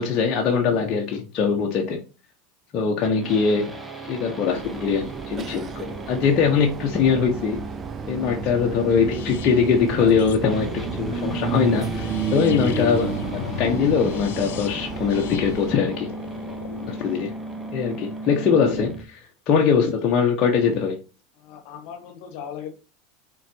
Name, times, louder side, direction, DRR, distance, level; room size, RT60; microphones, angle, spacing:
voice 1, 0.0-2.0 2.7-3.7 4.0-7.7 8.1-16.1 16.9-17.3 17.7-21.0, left 6 dB, 45° left, 1.1 m, -22 dB
sound 1, 3.0-19.0, right 2 dB, 5° right, 1.0 m, -36 dB
sound 2, 4.5-15.7, right 7 dB, 30° right, 0.4 m, -32 dB
voice 2, 8.3-8.7 10.0-10.3 21.4-22.7, left 8 dB, 60° left, 1.5 m, -38 dB
sound 3, 9.1-17.0, left 11 dB, 75° left, 0.6 m, -36 dB
4.6 x 4.5 x 4.5 m
hypercardioid pair, 110°, 0 cm